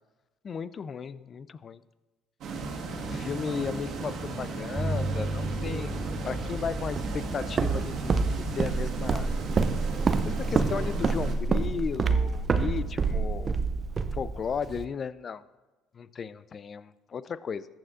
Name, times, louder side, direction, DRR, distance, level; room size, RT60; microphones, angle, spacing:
voice 1, 0.4-1.8 3.1-5.9 6.2-9.3 10.3-13.5 14.1-15.4 15.9-17.7, left 6 dB, 40° left, 15 dB, 0.4 m, -35 dB
sound 1, 2.4-11.4, right 3 dB, 60° right, 1.7 m, -35 dB
sound 2, 4.8-13.7, equal, 10° left, 1.3 m, -38 dB
Walk footsteps, 7.0-14.8, right 4 dB, 40° right, 0.6 m, -27 dB
14.5 x 9.0 x 2.5 m, 1.2 s
supercardioid pair, 80°, 0 cm